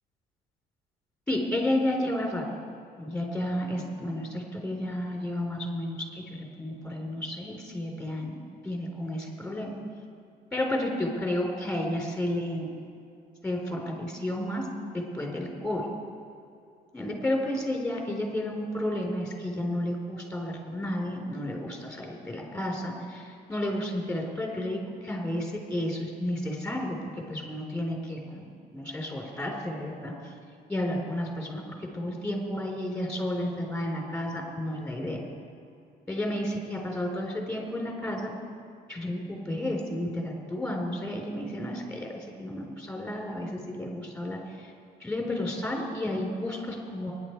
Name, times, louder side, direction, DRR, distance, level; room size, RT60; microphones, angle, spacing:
voice 1, 1.3-2.4 3.0-8.4 8.6-9.7 10.5-12.7 13.4-14.7 14.9-15.9 16.9-30.3 30.7-35.2 36.1-38.3 38.9-44.7 45.0-47.1, left 1 dB, 5° left, 0 dB, 4.1 m, -32 dB
23.5 x 10.5 x 4.7 m, 2.6 s
cardioid pair, 110°, 17 cm